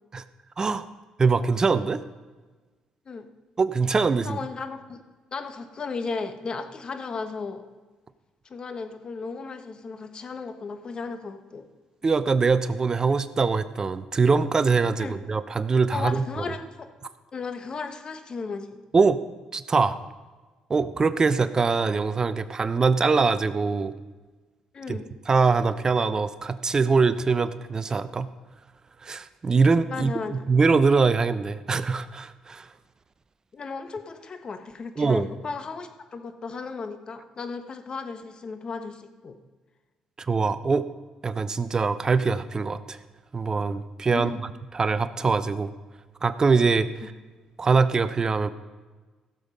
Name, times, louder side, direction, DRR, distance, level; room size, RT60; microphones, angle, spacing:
voice 1, 0.6-0.9 1.2-2.0 3.6-4.4 12.0-16.2 18.9-19.2 19.5-20.0 20.7-23.9 24.9-25.0 25.3-28.3 29.0-32.7 35.0-35.3 40.3-40.8 41.2-43.0 43.3-44.5 44.7-45.7 46.2-47.1 47.6-48.5, right 4 dB, 35° right, 14 dB, 0.7 m, -23 dB
voice 2, 4.2-5.0 5.3-7.6 8.4-11.6 15.0-15.1 15.9-16.9 17.3-18.8 24.7-25.1 29.9-30.4 33.5-39.4 44.1-44.4, left 4 dB, 45° left, 9 dB, 1.3 m, -35 dB
16.0 x 7.1 x 5.3 m, 1.3 s
cardioid pair, 80°, 2 cm